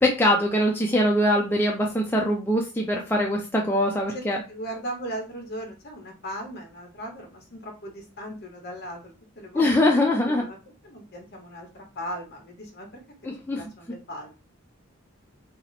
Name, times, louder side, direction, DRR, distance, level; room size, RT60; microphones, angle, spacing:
voice 1, 0.0-4.4 9.5-10.4 13.3-13.6, left 1 dB, 10° left, -1 dB, 0.4 m, -22 dB
voice 2, 4.1-10.6 10.8-14.3, equal, 50° left, 2 dB, 1.0 m, -38 dB
2.8 x 2.0 x 3.9 m, 0.31 s
head